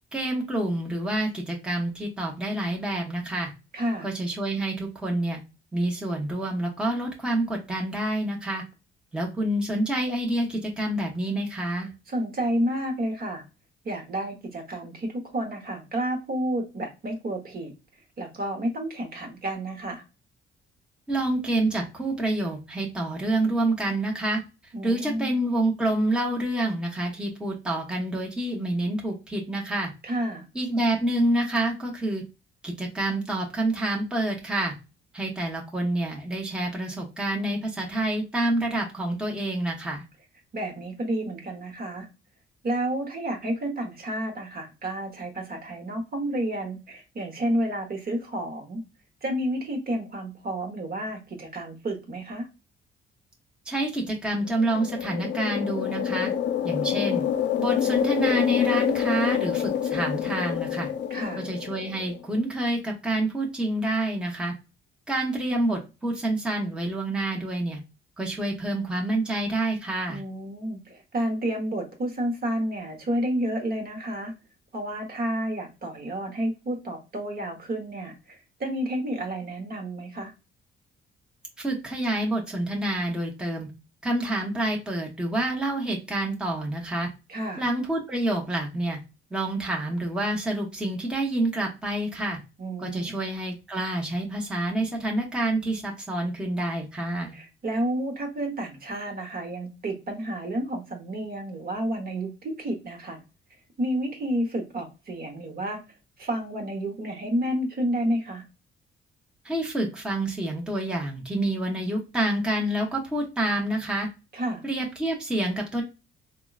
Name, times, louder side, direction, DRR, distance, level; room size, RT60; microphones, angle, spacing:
voice 1, 0.1-3.5 4.0-5.4 5.7-8.6 9.1-11.9 21.1-24.4 24.8-29.9 30.5-32.2 32.6-34.7 35.1-40.0 53.7-56.3 56.6-57.2 57.6-60.9 61.4-64.5 65.1-67.8 68.2-70.2 81.6-83.7 84.0-87.1 87.6-89.0 89.3-92.4 92.8-97.4 109.4-114.1 114.6-115.8, right 1 dB, 5° right, -1 dB, 0.8 m, -27 dB
voice 2, 3.7-4.1 12.1-13.4 13.8-17.7 18.2-20.0 24.7-25.4 30.0-30.5 40.5-42.1 42.6-48.8 49.2-52.5 61.1-61.5 70.1-74.3 74.7-80.3 87.3-87.6 92.6-93.1 97.3-103.2 103.8-105.8 106.2-108.4 114.3-114.6, right 1 dB, 50° right, 2 dB, 1.1 m, -30 dB
sound 1, 54.5-62.2, left 9 dB, 65° left, 0.4 m, -27 dB
3.6 x 2.1 x 2.3 m, 0.28 s
cardioid pair, 90°, 20 cm